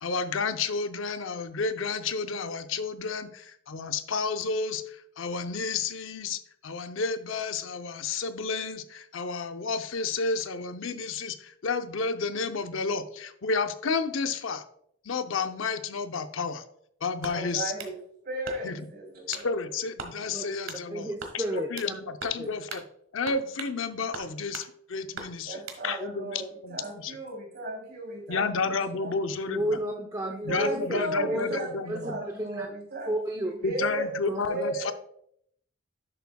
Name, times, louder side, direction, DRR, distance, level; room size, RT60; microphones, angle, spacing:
voice 1, 0.0-14.6 15.0-16.6 17.0-17.7 18.6-18.8 19.3-22.8 23.1-27.2 28.3-29.8 30.4-32.2 33.6-34.9, left 4 dB, 70° left, 9 dB, 0.6 m, -31 dB
sound 1, 17.2-18.0 18.4-18.9 19.3-19.5 20.0-20.2 20.7-20.8 21.2-21.9 22.2-22.4 22.7-22.9 23.3-23.8 24.1-24.7 25.1-25.8, right 4 dB, 75° right, 1.4 m, -40 dB
voice 2, 17.3-17.9 18.2-19.6 25.4-29.5 30.3-34.1 34.5-34.9, right 2 dB, 50° right, 1 dB, 3.0 m, -35 dB
voice 3, 20.9-21.9 22.4-22.5 29.5-31.0 31.3-31.6 31.9-32.7 33.1-33.6 34.2-34.4, right 1 dB, 15° right, 1 dB, 0.6 m, -31 dB
10.5 x 6.9 x 2.3 m, 0.69 s
head